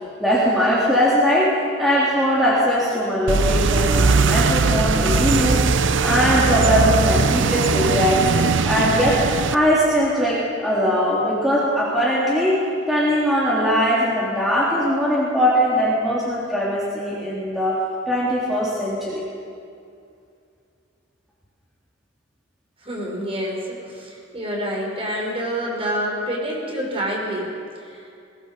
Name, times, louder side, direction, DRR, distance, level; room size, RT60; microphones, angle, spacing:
voice 1, 0.2-5.6 6.0-8.3 8.6-9.2 9.5-17.8 18.1-19.3, equal, ahead, -8 dB, 3.7 m, -20 dB
sound 1, 3.3-9.6, right 4 dB, 75° right, 0.7 m, -19 dB
voice 2, 22.8-28.1, equal, 30° right, -2 dB, 5.6 m, -27 dB
21.5 x 20.0 x 6.9 m, 2.4 s
head